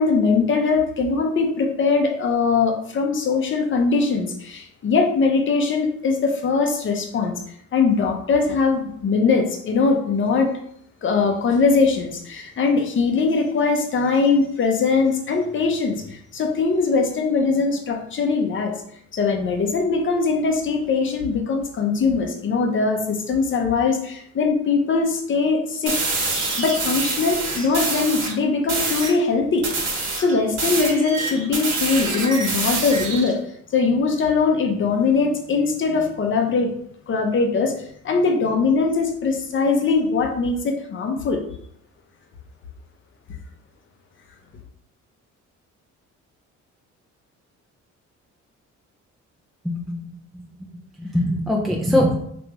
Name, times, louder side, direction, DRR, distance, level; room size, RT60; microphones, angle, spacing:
voice 1, 0.0-7.3 7.7-10.5 11.0-18.7 19.1-26.0 26.6-29.7 30.2-33.4 33.7-36.7 37.1-37.7 38.0-41.4, left 4 dB, 40° left, 3 dB, 0.7 m, -21 dB
sound 1, 25.9-28.3 28.7-29.2 29.6-33.3, right 3 dB, 55° right, 1.2 m, -26 dB
voice 2, 49.6-50.1 51.0-52.2, left 1 dB, ahead, -1 dB, 0.4 m, -21 dB
3.3 x 2.6 x 2.9 m, 0.69 s
cardioid pair, 90°, 30 cm